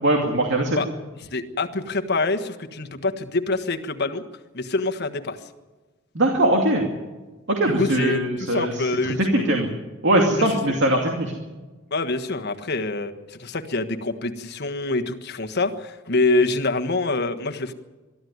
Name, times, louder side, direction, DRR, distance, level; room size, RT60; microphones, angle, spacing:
voice 1, 0.0-0.8 6.1-6.8 7.5-9.7 10.0-11.3, right 1 dB, 60° right, 1 dB, 2.5 m, -21 dB
voice 2, 1.3-4.2 4.5-5.4 7.6-9.4 10.4-10.5 11.9-17.7, left 2 dB, 55° left, 7 dB, 1.4 m, -25 dB
22.5 x 13.0 x 9.5 m, 1.2 s
head